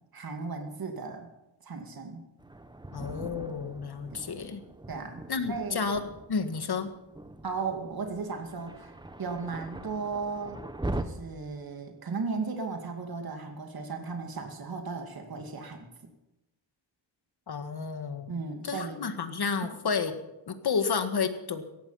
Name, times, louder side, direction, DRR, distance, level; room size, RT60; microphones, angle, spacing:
voice 1, 0.1-1.3 1.6-2.2 4.1-4.2 4.9-5.8 7.4-10.6 10.9-15.9 18.3-19.0, right 4 dB, 55° right, 4 dB, 2.4 m, -36 dB
Thunder, 2.4-11.0, right 1 dB, 10° right, 1.1 m, -41 dB
voice 2, 2.9-4.6 5.3-6.9 17.5-18.3 18.6-20.1 20.5-21.6, left 5 dB, 60° left, 8 dB, 1.8 m, -31 dB
17.0 x 14.5 x 5.8 m, 0.95 s
wide cardioid pair, 100°, 44 cm